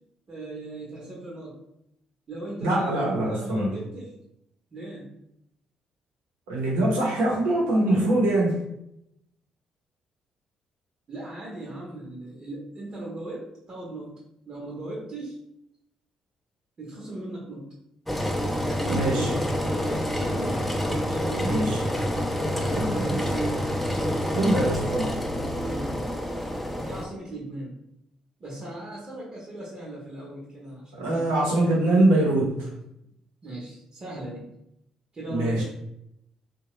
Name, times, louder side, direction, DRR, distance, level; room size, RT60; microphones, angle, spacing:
voice 1, 0.3-1.6 2.3-4.1 4.7-5.1 11.1-14.2 14.5-15.4 16.8-17.7 18.6-20.6 21.1-21.7 22.4-23.7 25.6-26.1 26.8-27.7 28.4-31.2 33.4-34.5 35.1-35.6, right 2 dB, 45° right, -4 dB, 0.9 m, -38 dB
voice 2, 2.6-3.7 6.5-8.6 18.9-19.3 21.4-21.8 22.7-23.3 24.3-25.1 30.9-32.7 35.3-35.6, right 1 dB, 90° right, -3 dB, 0.8 m, -23 dB
Engine, 18.1-27.1, equal, 5° left, 0.5 m, -27 dB
2.8 x 2.2 x 3.0 m, 0.80 s
hypercardioid pair, 55°, 2 cm